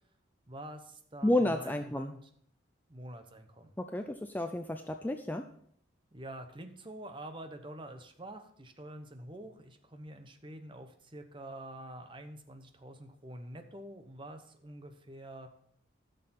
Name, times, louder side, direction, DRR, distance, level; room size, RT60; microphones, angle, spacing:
voice 1, 0.5-2.2 2.9-3.7 6.1-15.5, right 1 dB, 25° right, 7 dB, 0.9 m, -47 dB
voice 2, 1.2-2.1 3.8-5.5, left 1 dB, 10° left, 6 dB, 0.4 m, -31 dB
13.0 x 6.5 x 4.2 m, 0.64 s
head